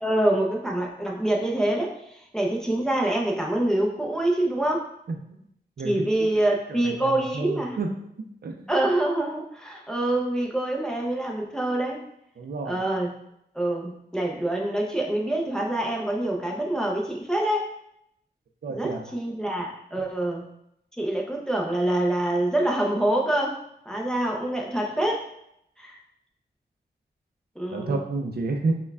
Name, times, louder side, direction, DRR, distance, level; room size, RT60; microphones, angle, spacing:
voice 1, 0.0-4.9 5.8-7.8 8.7-12.0 12.6-13.1 13.5-17.7 18.7-20.5 21.0-23.6 23.9-25.3 25.8-26.0 27.6-28.0, right 1 dB, 5° left, -2 dB, 0.6 m, -26 dB
voice 2, 5.1-5.4 5.8-6.0 6.9-7.9 8.4-8.7 12.4-12.8 18.6-19.1 27.7-28.7, right 3 dB, 60° right, 3 dB, 0.5 m, -30 dB
5.3 x 2.3 x 2.3 m, 0.77 s
wide cardioid pair, 85°, 18 cm